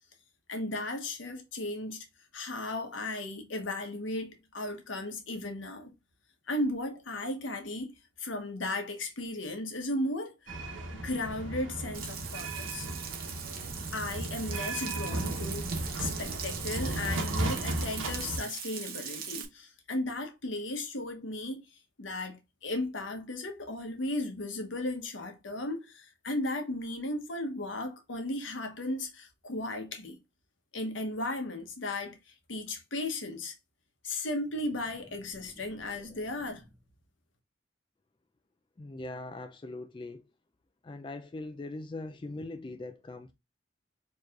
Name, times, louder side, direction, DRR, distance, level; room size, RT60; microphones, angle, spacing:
voice 1, 0.5-2.1 2.3-5.9 6.5-7.9 8.2-10.3 10.9-12.9 13.9-21.7 22.0-30.2 30.7-32.2 32.5-33.5 34.0-36.6, left 2 dB, 80° left, 1.0 m, -35 dB
sound 1, 10.5-18.4, right 2 dB, 90° right, 1.0 m, -35 dB
Frying (food), 11.9-19.5, right 8 dB, 50° right, 0.8 m, -41 dB
sound 2, 34.4-37.0, equal, 20° right, 2.4 m, -57 dB
voice 2, 38.8-40.2 40.8-43.3, left 2 dB, 25° left, 0.3 m, -41 dB
4.5 x 3.0 x 2.4 m
head